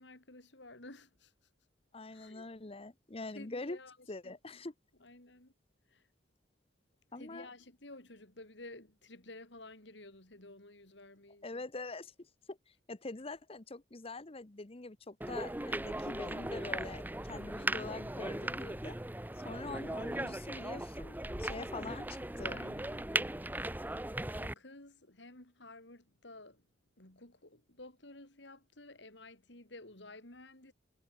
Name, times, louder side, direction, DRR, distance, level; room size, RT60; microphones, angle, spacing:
voice 1, 0.0-1.3 2.1-2.7 3.3-4.0 4.2-4.4 5.0-5.5 5.9-6.1 7.2-11.6 22.4-23.1 24.3-26.7 27.0-30.7, left 2 dB, 60° left, 4.0 m, -53 dB
voice 2, 1.9-3.8 4.1-4.7 7.1-7.5 11.4-19.0 19.4-22.6, left 2 dB, 30° left, 0.9 m, -44 dB
sound 1, 15.2-24.5, right 1 dB, 10° right, 0.9 m, -38 dB
head